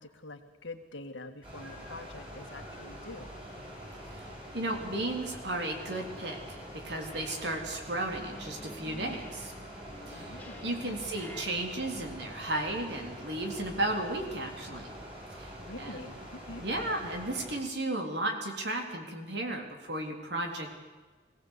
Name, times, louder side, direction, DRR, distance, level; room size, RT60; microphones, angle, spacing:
voice 1, 0.0-3.3 10.1-11.0 15.6-16.6, left 2 dB, 80° left, 6 dB, 1.9 m, -45 dB
sound 1, 1.4-17.5, equal, 30° right, 7.3 m, -45 dB
voice 2, 4.5-9.5 10.1-14.9 15.3-16.1 16.6-20.7, right 1 dB, 60° right, 3 dB, 3.6 m, -34 dB
sound 2, 5.6-6.8 7.0-11.4, left 1 dB, 10° left, 1.7 m, -50 dB
22.0 x 17.5 x 8.3 m, 1.4 s
head